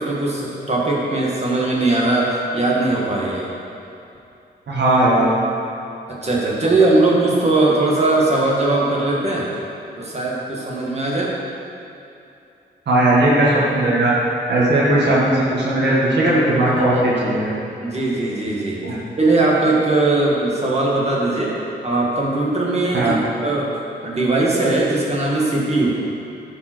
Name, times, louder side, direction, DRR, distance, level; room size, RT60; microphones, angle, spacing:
voice 1, 0.0-3.5 6.1-9.5 10.0-11.3 14.5-14.9 16.7-17.0 17.8-18.8 19.2-21.5 21.8-23.7 24.0-26.0, right 2 dB, 35° right, -4 dB, 2.0 m, -20 dB
voice 2, 4.7-5.3 6.6-6.7 12.9-14.1 14.5-17.5 18.8-19.0 22.9-23.1, right 1 dB, 70° right, -6 dB, 2.0 m, -17 dB
10.5 x 5.5 x 4.6 m, 2.7 s
cardioid pair, 70°, 19 cm